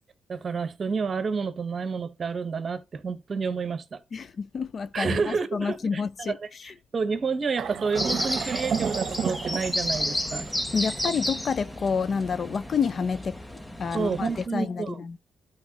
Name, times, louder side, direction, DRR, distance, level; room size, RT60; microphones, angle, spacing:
voice 1, 0.3-4.0 4.9-10.5 13.9-15.0, right 5 dB, 40° right, 1.1 m, -30 dB
voice 2, 4.1-6.4 6.6-6.7 10.7-13.4 13.8-15.2, left 6 dB, 45° left, 0.4 m, -29 dB
sound 1, 7.6-12.7, right 7 dB, 60° right, 0.8 m, -33 dB
sound 2, 8.0-14.5, left 1 dB, 10° left, 0.7 m, -32 dB
12.5 x 4.6 x 2.9 m
cardioid pair, 90°, 0 cm